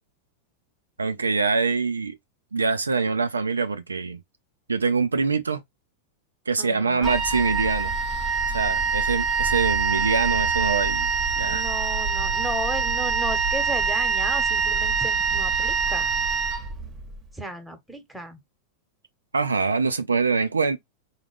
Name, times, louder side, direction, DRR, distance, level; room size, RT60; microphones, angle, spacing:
voice 1, 1.0-2.1 2.5-4.2 4.7-5.6 6.5-8.0 8.5-11.1 11.4-11.6 19.3-20.8, right 4 dB, 75° right, 0.4 m, -24 dB
voice 2, 6.6-7.2 11.4-16.1 17.3-18.4, equal, ahead, 1.1 m, -34 dB
Wind instrument woodwind instrument, 7.0-17.1, right 5 dB, 30° right, 1.0 m, -24 dB
4.0 x 2.3 x 3.4 m
figure-of-eight pair, 90°, 0 cm